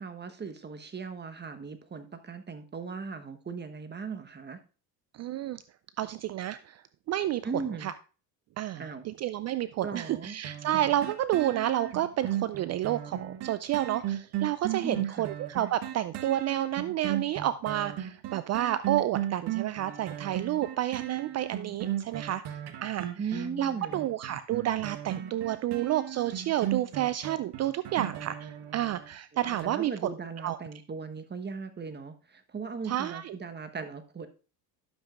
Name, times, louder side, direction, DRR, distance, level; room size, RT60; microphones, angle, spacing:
voice 1, 0.0-4.6 7.4-7.9 8.8-9.1 9.8-10.4 14.8-15.3 23.2-24.1 29.6-34.3, right 5 dB, 20° right, 8 dB, 1.1 m, -38 dB
voice 2, 5.2-5.6 6.0-7.9 8.6-23.1 23.3-29.9 30.4-30.6 32.9-33.3, right 13 dB, 35° right, 14 dB, 0.4 m, -30 dB
sound 1, 10.4-29.1 29.6-29.7, right 11 dB, 55° right, 1.3 m, -36 dB
11.0 x 7.2 x 2.5 m, 0.34 s
hypercardioid pair, 75°, 48 cm